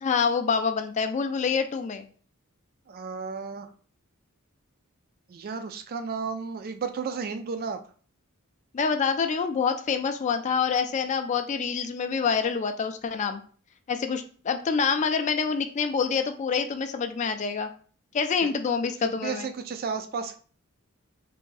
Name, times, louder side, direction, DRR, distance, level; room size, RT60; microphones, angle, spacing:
voice 1, 0.0-2.1 8.7-13.4 13.9-17.7 18.1-19.4, left 5 dB, 35° left, 7 dB, 0.3 m, -26 dB
voice 2, 2.9-3.7 5.3-7.8 18.4-18.5 19.0-20.4, right 5 dB, 45° right, 9 dB, 0.4 m, -33 dB
3.4 x 2.6 x 3.2 m, 0.42 s
head